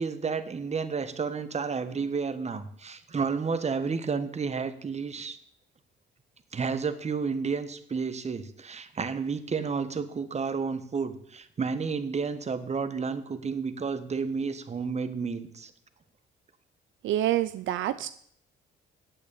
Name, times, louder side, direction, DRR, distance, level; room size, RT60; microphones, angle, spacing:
voice 1, 0.0-5.4 6.5-15.7, right 5 dB, 35° right, 11 dB, 1.3 m, -31 dB
voice 2, 17.0-18.1, right 13 dB, 75° right, 13 dB, 0.5 m, -27 dB
9.1 x 8.4 x 8.5 m, 0.66 s
cardioid pair, 90°, 20 cm